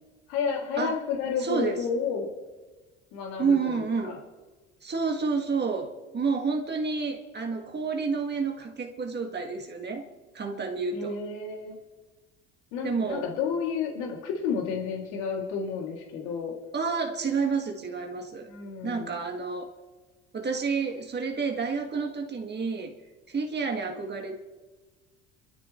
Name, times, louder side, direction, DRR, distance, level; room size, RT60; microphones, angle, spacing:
voice 1, 0.3-2.3 3.1-4.2 10.9-11.8 12.7-16.5 18.5-19.1, left 6 dB, 85° left, -1 dB, 2.8 m, -31 dB
voice 2, 1.4-1.8 3.4-4.2 4.8-10.0 10.3-11.2 12.8-13.3 16.7-18.5 18.8-19.7 20.3-22.9 23.3-24.4, right 5 dB, 30° right, 2 dB, 2.0 m, -29 dB
29.5 x 13.0 x 3.2 m, 1.3 s
supercardioid pair, 80°, 32 cm